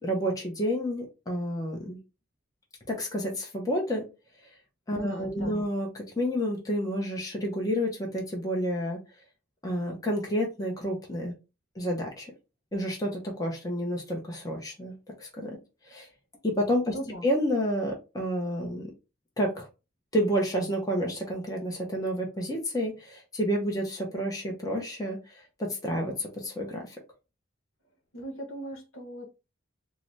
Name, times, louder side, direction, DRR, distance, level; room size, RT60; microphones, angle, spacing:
voice 1, 0.0-2.0 2.9-4.0 4.9-9.0 9.6-11.3 11.7-12.3 12.7-15.6 15.8-16.1 16.4-16.9 17.2-18.9 19.4-19.7 20.1-27.0, equal, 15° left, 0.6 m, -30 dB
voice 2, 4.9-5.6 16.9-17.2 28.1-29.3, equal, 75° left, 1.1 m, -38 dB
3.8 x 2.0 x 3.1 m
head